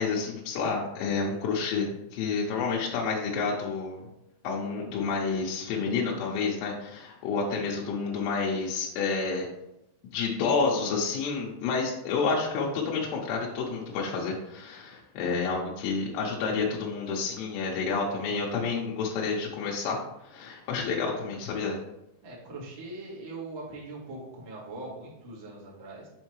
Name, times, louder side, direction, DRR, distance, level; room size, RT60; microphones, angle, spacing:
voice 1, 0.0-4.1 4.4-9.5 10.1-21.8, left 4 dB, 80° left, -3 dB, 2.7 m, -29 dB
voice 2, 22.2-26.1, right 2 dB, 80° right, -6 dB, 1.1 m, -41 dB
7.2 x 4.3 x 3.1 m, 0.86 s
omnidirectional pair, 5.4 m